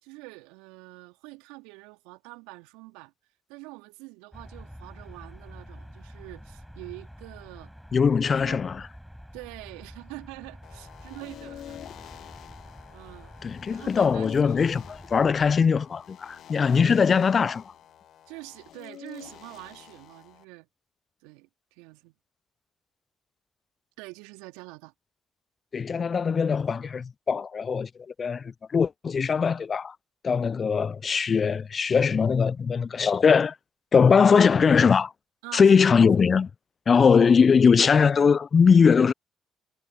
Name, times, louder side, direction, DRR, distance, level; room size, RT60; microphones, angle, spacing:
voice 1, 0.0-3.1 3.5-7.7 8.2-8.6 9.3-12.5 12.9-13.3 13.7-14.7 16.8-17.2 18.3-20.7 21.2-22.1 24.0-24.9 35.4-35.9 37.1-37.4, right 25 dB, 75° right, 2.4 m, -45 dB
sound 1, 4.3-15.6, equal, ahead, 7.3 m, -47 dB
voice 2, 7.9-8.8 13.4-17.6 25.7-27.9 28.2-29.9 30.2-33.5 33.9-35.1 35.5-36.5 36.9-39.1, left 6 dB, 45° left, 0.5 m, -21 dB
sound 2, 10.6-20.4, left 11 dB, 60° left, 1.2 m, -46 dB
hypercardioid pair, 45°, 0 cm